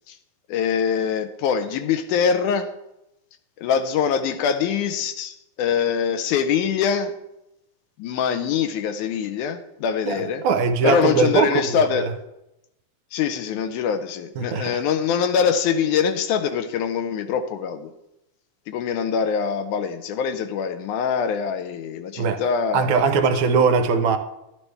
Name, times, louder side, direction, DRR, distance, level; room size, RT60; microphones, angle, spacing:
voice 1, 0.5-2.7 3.6-7.1 8.0-10.4 10.8-12.1 13.1-17.9 18.7-23.2 23.6-23.7, left 7 dB, 90° left, 2.2 m, -23 dB
voice 2, 10.1-12.1 14.4-14.8 22.2-22.4 22.7-24.2, right 5 dB, 75° right, 2.0 m, -21 dB
11.5 x 11.0 x 3.4 m
omnidirectional pair, 3.5 m